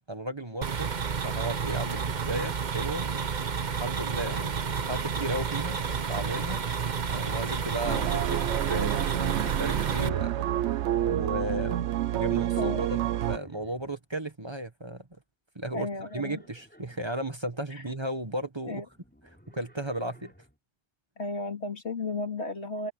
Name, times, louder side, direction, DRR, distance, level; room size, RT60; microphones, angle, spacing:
voice 1, 0.1-0.9 1.2-3.1 3.8-5.8 6.1-6.6 7.1-13.0 13.3-15.1 15.5-15.9 16.1-18.8 19.5-20.3, right 1 dB, 25° right, 1.6 m, -35 dB
sound 1, 0.6-10.1, right 6 dB, 45° right, 1.0 m, -31 dB
sound 2, 7.8-13.4, right 12 dB, 90° right, 0.9 m, -28 dB
Livestock farm animals working animals, 12.6-14.0 15.9-17.1 18.8-20.6, equal, 10° left, 4.3 m, -55 dB
voice 2, 15.7-16.4 17.7-17.8 18.7-18.8 21.2-22.9, left 3 dB, 80° left, 2.9 m, -34 dB
open air
omnidirectional pair, 1.1 m